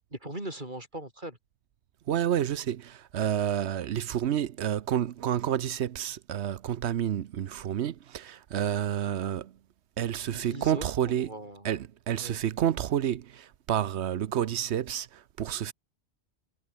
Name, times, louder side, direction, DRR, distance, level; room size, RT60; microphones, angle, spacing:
voice 1, 0.1-1.4 10.3-11.7 12.2-12.4, right 1 dB, 45° right, 5.9 m, -40 dB
voice 2, 2.1-9.5 10.0-11.3 11.6-15.7, right 10 dB, 80° right, 1.0 m, -29 dB
omnidirectional pair, 1.1 m